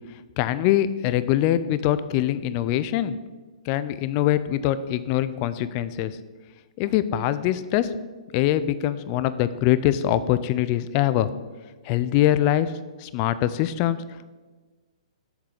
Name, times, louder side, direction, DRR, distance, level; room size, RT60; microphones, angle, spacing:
voice 1, 0.4-3.2 3.7-6.1 6.8-7.9 8.3-11.3 11.9-12.7 13.0-14.0, left 12 dB, 30° left, 14 dB, 0.3 m, -23 dB
7.2 x 3.9 x 6.5 m, 1.3 s
hypercardioid pair, 155°, 4 cm